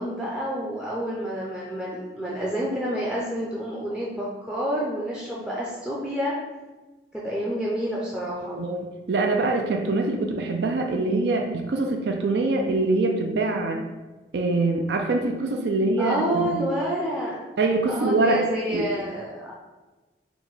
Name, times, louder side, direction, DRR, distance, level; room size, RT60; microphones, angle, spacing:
voice 1, 0.0-6.4 7.1-8.6 16.0-17.4 17.9-19.5, equal, 5° right, -6 dB, 0.5 m, -28 dB
voice 2, 8.4-8.8 9.1-13.8 14.3-16.6 17.6-18.4 18.7-18.9, right 2 dB, 75° right, 3 dB, 0.4 m, -24 dB
4.5 x 2.2 x 4.0 m, 1.2 s
head